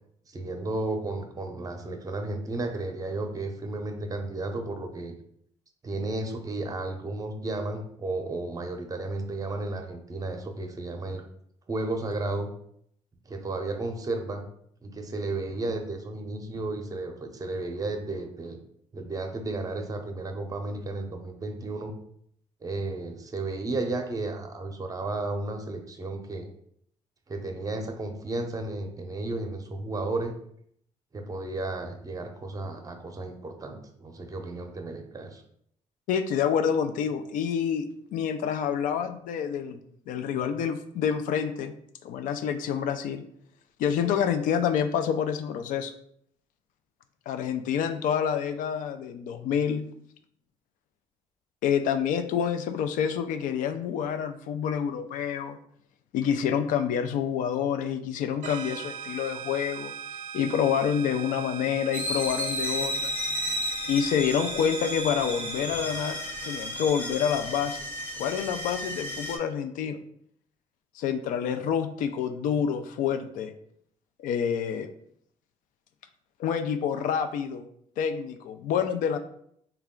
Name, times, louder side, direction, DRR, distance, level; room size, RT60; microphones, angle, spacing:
voice 1, 0.3-5.1 5.8-11.2 11.7-12.5 13.3-14.4 14.8-18.6 18.9-21.9 22.6-26.5 27.3-30.3 31.1-35.4, right 2 dB, 25° right, 5 dB, 0.6 m, -33 dB
voice 2, 36.1-37.9 38.1-39.8 40.1-41.7 42.0-43.2 43.8-45.9 47.3-49.8 51.6-55.6 56.1-59.9 60.3-63.1 63.9-66.2 66.5-67.8 68.2-70.0 71.0-73.5 74.2-74.9 76.4-77.6 78.0-79.2, left 8 dB, 80° left, 9 dB, 0.4 m, -27 dB
sound 1, 58.4-67.8, right 7 dB, 65° right, 0.5 m, -40 dB
sound 2, 61.9-69.4, left 1 dB, 15° left, 0.7 m, -33 dB
3.3 x 2.3 x 3.6 m, 0.68 s
cardioid pair, 90°, 13 cm